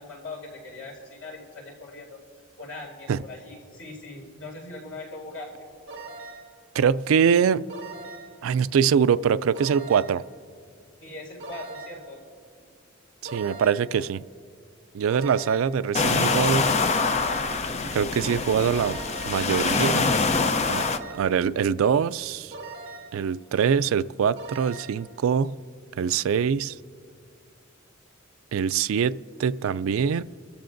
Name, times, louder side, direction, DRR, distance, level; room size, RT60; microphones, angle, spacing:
voice 1, 0.0-2.2 2.6-5.5 11.0-12.2, left 2 dB, 80° left, -1 dB, 4.7 m, -40 dB
sound 1, 5.9-6.6 7.7-8.4 9.5-10.3 11.4-12.1 13.2-14.0 15.1-15.8 16.9-17.7 18.8-19.5 20.7-21.4 22.5-23.2 24.4-25.1, right 3 dB, 55° right, 2.0 m, -41 dB
voice 2, 6.7-7.6 8.4-10.2 13.2-14.2 14.9-16.7 17.9-19.0 19.2-20.1 20.7-20.8 21.1-22.5 23.1-25.5 26.0-26.7 28.5-30.2, right 7 dB, 75° right, 16 dB, 0.3 m, -23 dB
sound 2, 15.9-21.0, left 4 dB, 35° left, 0.6 m, -24 dB
28.5 x 14.5 x 2.6 m, 2.3 s
head